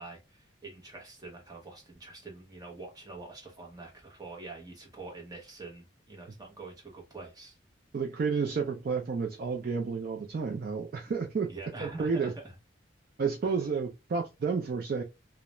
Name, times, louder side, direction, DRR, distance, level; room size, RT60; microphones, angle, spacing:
voice 1, 0.0-7.6 11.5-12.5 13.4-13.5, right 3 dB, 20° right, 0.7 m, -45 dB
voice 2, 7.9-11.5 11.8-12.3 13.2-15.0, right 5 dB, 50° right, 0.3 m, -31 dB
2.3 x 2.1 x 2.9 m
head